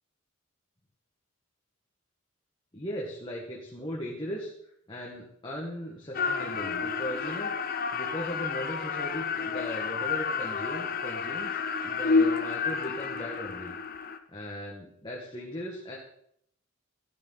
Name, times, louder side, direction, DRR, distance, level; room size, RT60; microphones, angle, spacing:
voice 1, 2.7-4.5 4.9-7.5 7.9-13.7 14.3-16.0, equal, 20° left, -3 dB, 1.7 m, -38 dB
sound 1, 6.1-14.2, left 5 dB, 45° left, 0.8 m, -30 dB
12.0 x 11.5 x 4.1 m, 0.70 s
head